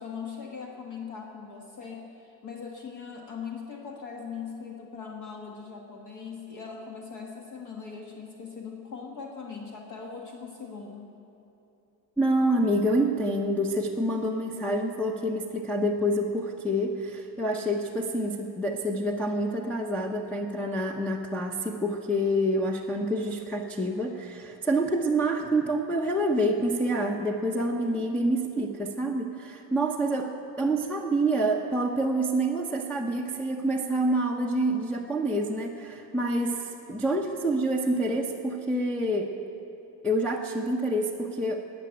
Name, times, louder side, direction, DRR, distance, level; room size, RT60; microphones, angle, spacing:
voice 1, 0.0-11.1, left 6 dB, 45° left, 1 dB, 1.4 m, -40 dB
voice 2, 12.2-39.3 40.0-41.6, right 1 dB, 5° left, -4 dB, 0.6 m, -27 dB
19.5 x 6.8 x 8.8 m, 2.9 s
cardioid pair, 150°, 39 cm